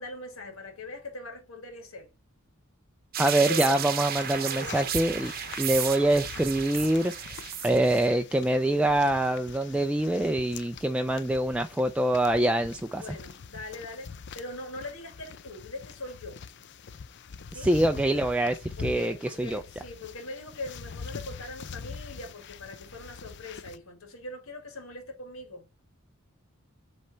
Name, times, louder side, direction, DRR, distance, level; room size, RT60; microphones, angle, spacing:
voice 1, 0.0-2.1 3.4-3.9 4.3-4.9 13.0-16.4 17.5-17.7 18.8-25.6, left 1 dB, 85° left, 2.0 m, -41 dB
sound 1, 3.1-8.1, right 9 dB, 45° right, 0.8 m, -33 dB
voice 2, 3.2-5.3 5.6-7.1 7.6-13.0 17.5-19.6, right 1 dB, 5° right, 0.3 m, -25 dB
sound 2, 4.2-23.8, left 5 dB, 55° left, 0.5 m, -44 dB
7.4 x 3.3 x 4.0 m
head